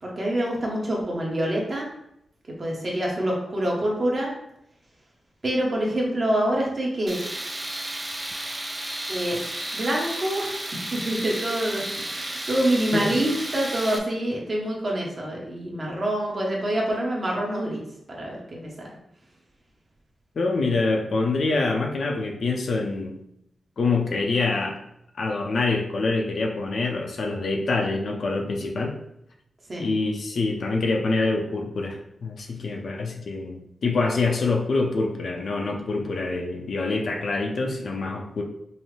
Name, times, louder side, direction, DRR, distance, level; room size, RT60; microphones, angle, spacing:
voice 1, 0.0-1.9 2.6-4.3 5.4-7.2 9.1-9.5 9.7-10.5 10.9-17.8 18.1-18.9 29.7-29.9, right 1 dB, 35° right, -2 dB, 1.0 m, -26 dB
Tools, 7.1-14.0, right 1 dB, 20° right, 0.4 m, -33 dB
voice 2, 20.4-23.1 23.8-24.7 25.2-28.9 29.8-38.4, left 3 dB, 60° left, 1 dB, 0.6 m, -25 dB
5.4 x 2.1 x 3.2 m, 0.76 s
wide cardioid pair, 145°, 0 cm